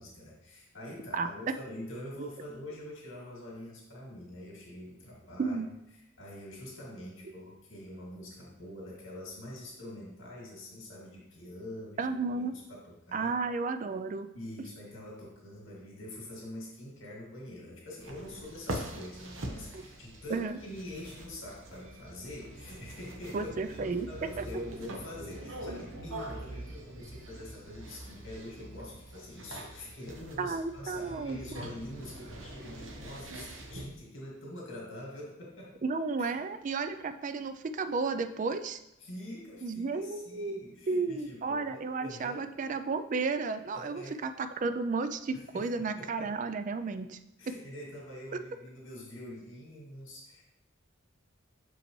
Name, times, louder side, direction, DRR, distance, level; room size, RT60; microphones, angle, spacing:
voice 1, 0.0-5.6 5.9-13.4 14.3-35.8 36.2-36.4 39.0-42.4 43.7-44.2 45.3-46.3 47.4-50.4, left 1 dB, 70° left, -3 dB, 2.1 m, -45 dB
voice 2, 12.0-12.5 13.1-14.3 19.7-19.8 20.3-20.6 23.3-24.1 24.4-24.5 30.4-31.4 35.8-38.8 39.6-47.2 47.5-47.6 48.3-48.4, right 4 dB, 40° right, 10 dB, 0.3 m, -33 dB
sound 1, 18.0-33.8, right 1 dB, 70° right, 0.9 m, -44 dB
6.4 x 5.0 x 3.1 m, 0.89 s
head